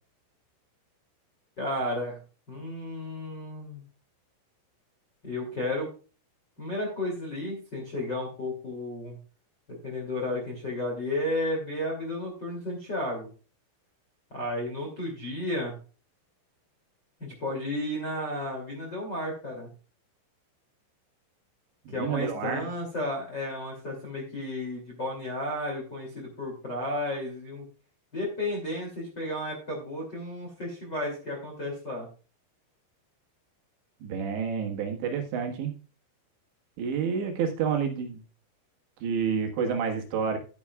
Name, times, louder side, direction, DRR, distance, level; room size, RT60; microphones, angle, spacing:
voice 1, 1.6-2.2 2.5-3.8 5.2-5.9 6.6-9.2 9.7-13.3 14.3-15.8 17.2-19.7 21.9-27.7 28.1-32.1, left 1 dB, 30° left, 0 dB, 2.3 m, -33 dB
voice 2, 21.9-22.7 34.0-35.7 36.8-38.2 39.0-40.4, right 6 dB, 70° right, 3 dB, 3.5 m, -29 dB
12.0 x 10.0 x 2.4 m, 0.35 s
omnidirectional pair, 5.9 m